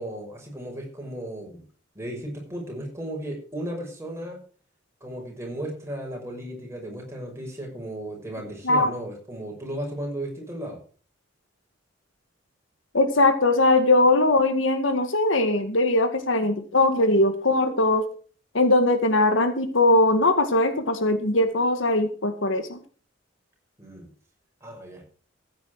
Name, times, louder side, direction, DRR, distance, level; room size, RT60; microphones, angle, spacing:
voice 1, 0.0-1.6 1.9-4.4 5.0-10.8 23.8-24.1 24.6-25.0, right 1 dB, 15° right, 0 dB, 6.0 m, -35 dB
voice 2, 12.9-18.1 18.5-22.8, left 2 dB, 75° left, 9 dB, 2.0 m, -20 dB
15.0 x 9.2 x 4.7 m, 0.40 s
head